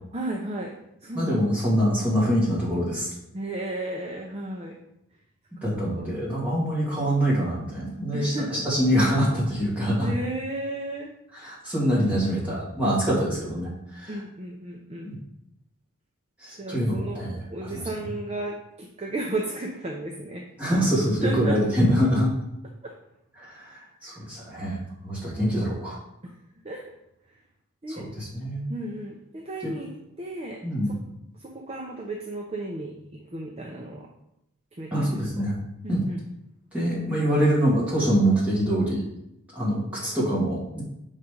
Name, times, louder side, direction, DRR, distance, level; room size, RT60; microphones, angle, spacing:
voice 1, 0.1-0.7 1.0-1.4 3.3-4.7 6.0-6.1 8.1-8.6 10.0-11.1 14.1-15.1 16.6-17.2 17.5-20.4 21.2-21.6 22.8-22.9 26.6-26.8 27.8-28.0 28.7-29.9 30.2-30.6 31.4-34.1 34.8-35.1 35.8-36.2, right 1 dB, 25° right, 0 dB, 0.5 m, -33 dB
voice 2, 1.1-3.1 5.6-10.1 11.3-14.2 15.0-15.2 16.4-18.1 20.6-22.3 23.4-24.8 25.0-26.0 27.9-28.7 29.6-29.7 30.6-31.0 34.9-35.5 35.9-36.0 36.7-39.0 39.5-40.8, equal, 5° right, -7 dB, 2.2 m, -25 dB
5.8 x 4.1 x 5.0 m, 0.83 s
head